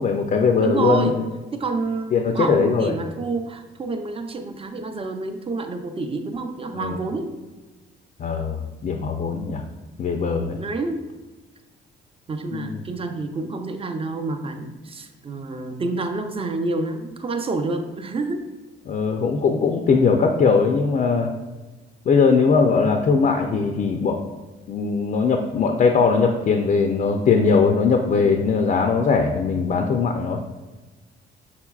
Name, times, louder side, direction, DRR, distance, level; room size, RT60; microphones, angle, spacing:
voice 1, 0.0-1.3 2.1-2.9 6.7-7.0 8.2-9.6 10.0-10.6 12.5-12.8 18.9-21.3 22.1-24.2 24.7-30.4, left 5 dB, 40° left, 3 dB, 0.4 m, -20 dB
voice 2, 0.6-1.2 1.5-7.4 10.6-11.0 12.3-18.4, right 3 dB, 30° right, 6 dB, 0.5 m, -28 dB
5.8 x 3.9 x 2.3 m, 1.2 s
cardioid pair, 90°, 20 cm